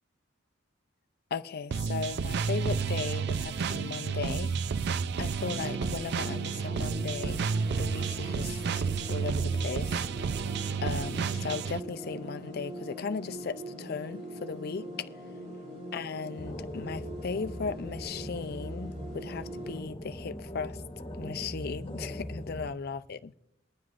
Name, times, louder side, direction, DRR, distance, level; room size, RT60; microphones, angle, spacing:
voice 1, 1.3-7.4 7.8-8.8 9.1-10.1 10.8-14.9 15.9-20.8 21.2-23.4, left 5 dB, 50° left, 0.5 m, -37 dB
sound 1, 1.7-11.8, right 5 dB, 60° right, 0.4 m, -31 dB
sound 2, 5.4-19.8, equal, 40° right, 3.5 m, -42 dB
sound 3, 16.4-22.7, equal, 25° left, 1.4 m, -40 dB
23.0 x 9.5 x 2.5 m
head